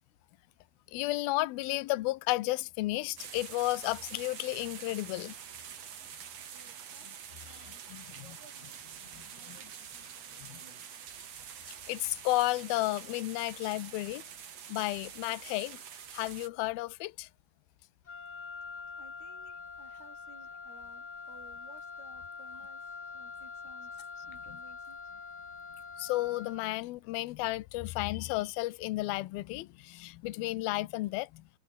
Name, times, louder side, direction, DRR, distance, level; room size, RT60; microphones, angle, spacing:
voice 1, 0.9-5.3 7.9-8.0 9.5-9.6 10.4-10.5 11.9-14.2 14.7-15.8 16.1-17.3 26.0-31.4, left 19 dB, 75° left, 2.6 m, -32 dB
sound 1, 3.2-16.5, right 8 dB, 45° right, 2.7 m, -46 dB
voice 2, 6.5-7.2 7.4-7.8 8.1-8.8 9.1-11.0 19.0-25.0, right 4 dB, 70° right, 9.6 m, -59 dB
Wind instrument woodwind instrument, 18.0-26.8, left 5 dB, 30° left, 2.4 m, -45 dB
omnidirectional pair, 4.7 m